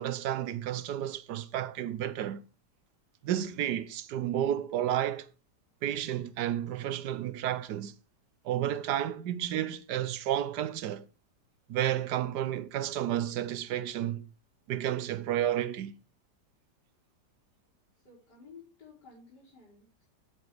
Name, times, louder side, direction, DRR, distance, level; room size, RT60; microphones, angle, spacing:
voice 1, 0.0-2.4 3.2-5.3 5.8-7.9 8.4-11.0 11.7-14.3 14.7-15.9, right 11 dB, 75° right, 1.3 m, -31 dB
voice 2, 18.0-20.1, left 5 dB, 75° left, 5.4 m, -54 dB
10.0 x 8.1 x 4.9 m
omnidirectional pair, 1.8 m